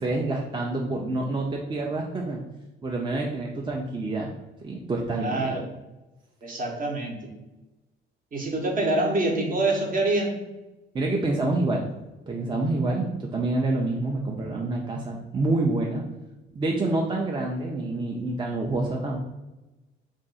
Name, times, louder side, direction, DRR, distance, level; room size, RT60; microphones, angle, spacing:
voice 1, 0.0-2.4 2.8-4.3 4.6-5.6 10.9-11.9 12.3-16.0 16.5-19.2, right 2 dB, 25° right, -1 dB, 0.4 m, -27 dB
voice 2, 5.2-5.6 6.4-7.3 8.3-10.4, right 2 dB, 45° right, 1 dB, 0.9 m, -26 dB
2.5 x 2.4 x 3.8 m, 1.0 s
cardioid pair, 90°, 20 cm